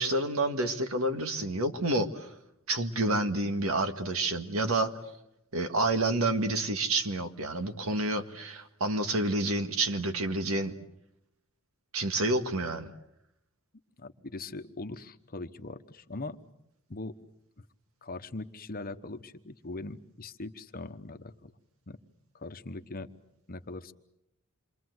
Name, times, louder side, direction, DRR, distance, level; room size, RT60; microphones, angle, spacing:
voice 1, 0.0-2.3 2.7-4.9 5.5-10.7 11.9-12.9, right 2 dB, 70° right, 7 dB, 1.9 m, -29 dB
voice 2, 14.0-16.4 16.9-17.2 17.6-17.7 18.0-21.6 21.9-22.0 22.3-23.1 23.5-23.9, left 2 dB, 45° left, 8 dB, 1.1 m, -41 dB
28.0 x 24.0 x 8.0 m, 0.82 s
head